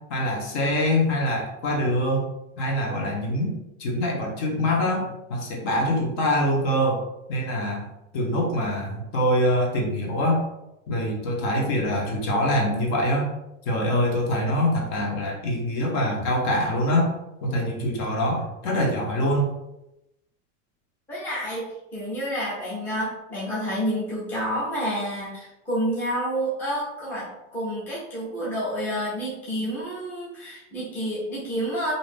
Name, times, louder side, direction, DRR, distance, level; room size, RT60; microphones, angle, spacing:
voice 1, 0.0-2.3 2.6-7.9 8.1-10.4 10.9-13.3 13.6-17.1 17.4-19.5, equal, 50° left, -1 dB, 0.8 m, -24 dB
voice 2, 21.1-21.7 21.9-31.9, equal, 5° left, -8 dB, 0.5 m, -29 dB
2.6 x 2.3 x 3.4 m, 0.90 s
supercardioid pair, 165°, 39 cm